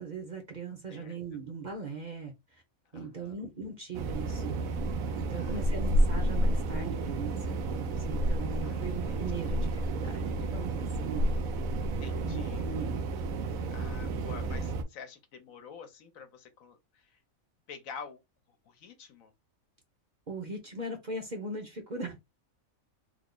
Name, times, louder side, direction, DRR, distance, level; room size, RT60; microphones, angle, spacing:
voice 1, 0.0-2.3 2.9-4.5 5.1-11.3 12.2-13.0 20.3-22.2, right 3 dB, 40° right, 0.7 m, -39 dB
voice 2, 0.9-1.4 2.9-3.4 5.3-5.7 8.6-9.5 12.0-12.7 13.7-17.2 17.7-18.2 18.5-19.3, left 6 dB, 75° left, 1.1 m, -48 dB
sound 1, 3.9-14.8, right 1 dB, 80° right, 1.1 m, -30 dB
3.4 x 2.0 x 3.7 m
omnidirectional pair, 1.4 m